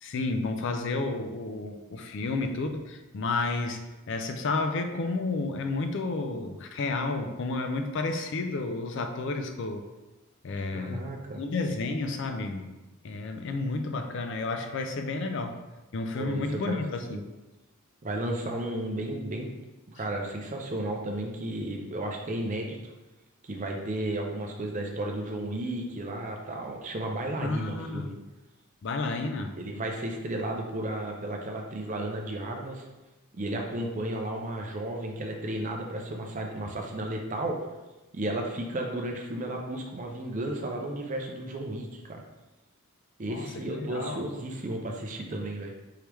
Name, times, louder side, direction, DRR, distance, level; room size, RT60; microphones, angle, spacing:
voice 1, 0.0-9.8 10.4-11.0 11.4-12.6 13.0-15.6 15.9-17.2 27.4-28.1 28.8-29.6 43.3-44.3, left 3 dB, 55° left, 6 dB, 0.4 m, -31 dB
voice 2, 10.7-11.4 16.1-16.8 17.1-17.2 18.0-19.5 19.9-22.8 23.4-28.1 29.6-32.9 33.3-37.6 38.1-42.2 43.2-45.7, right 1 dB, 35° right, 2 dB, 0.5 m, -33 dB
4.7 x 3.3 x 3.0 m, 1.1 s
head